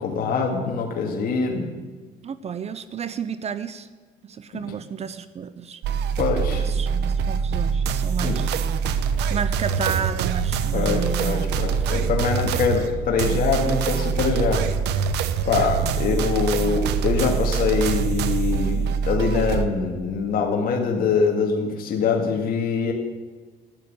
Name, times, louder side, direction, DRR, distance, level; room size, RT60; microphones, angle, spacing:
voice 1, 0.0-1.8 4.6-4.7 6.2-6.6 8.2-8.4 10.7-14.6 15.5-22.9, left 5 dB, 60° left, 1 dB, 2.1 m, -24 dB
voice 2, 2.2-3.9 4.2-5.8 6.6-8.5 9.3-11.9 15.8-16.0, right 7 dB, 40° right, 14 dB, 0.7 m, -32 dB
sound 1, 5.8-19.7, right 6 dB, 80° right, 0.9 m, -24 dB
12.5 x 9.5 x 8.6 m, 1.3 s
cardioid pair, 110°, 17 cm